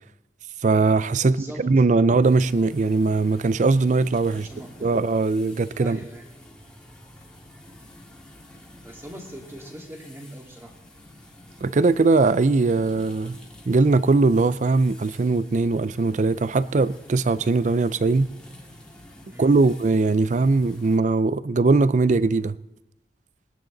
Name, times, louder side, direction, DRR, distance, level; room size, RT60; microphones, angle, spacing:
voice 1, 0.6-4.5 4.8-6.0 11.6-13.4 13.7-18.3 19.4-22.6, right 3 dB, 45° right, 0.4 m, -20 dB
voice 2, 1.2-1.7 4.3-5.0 5.8-6.3 8.8-10.8 19.3-19.6, equal, 15° right, 2.2 m, -41 dB
sound 1, 2.2-21.0, left 1 dB, 5° left, 2.0 m, -48 dB
21.0 x 10.5 x 3.9 m
head